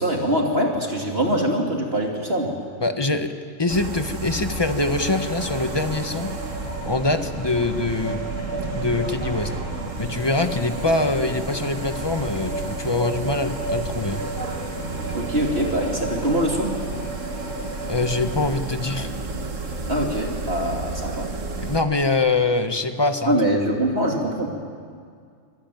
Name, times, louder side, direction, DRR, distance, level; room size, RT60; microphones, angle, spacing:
voice 1, 0.0-2.5 15.1-16.7 19.9-21.3 23.3-24.5, equal, 50° right, 0 dB, 2.9 m, -23 dB
voice 2, 2.8-3.3 3.6-6.3 6.8-8.2 8.7-9.5 10.0-14.2 17.9-19.1 21.6-23.3, left 2 dB, 20° left, 7 dB, 1.3 m, -24 dB
sound 1, 3.7-21.8, right 3 dB, 75° right, 2.1 m, -32 dB
sound 2, 5.1-18.5, right 1 dB, 40° left, 7.3 m, -34 dB
25.5 x 22.0 x 9.3 m, 2.1 s
omnidirectional pair, 1.3 m